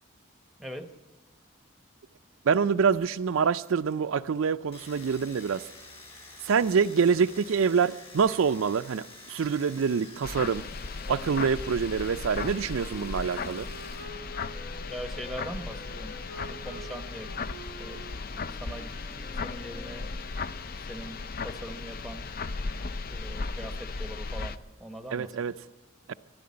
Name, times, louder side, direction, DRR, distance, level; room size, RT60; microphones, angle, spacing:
voice 1, 0.6-0.9 14.9-16.2 16.5-17.3 17.8-18.0 18.5-20.1 20.9-22.3 23.1-25.5, equal, ahead, 0.9 m, -41 dB
voice 2, 2.5-5.6 6.4-10.7 11.1-13.7 25.1-25.5 26.1-26.2, right 6 dB, 80° right, 0.4 m, -26 dB
Domestic sounds home sounds, 4.7-14.1 14.3-15.2, left 3 dB, 30° left, 3.8 m, -49 dB
sound 1, 10.2-24.6, left 4 dB, 45° left, 0.4 m, -36 dB
Wind instrument woodwind instrument, 11.0-20.5, right 1 dB, 75° left, 5.2 m, -47 dB
12.5 x 12.0 x 9.5 m
head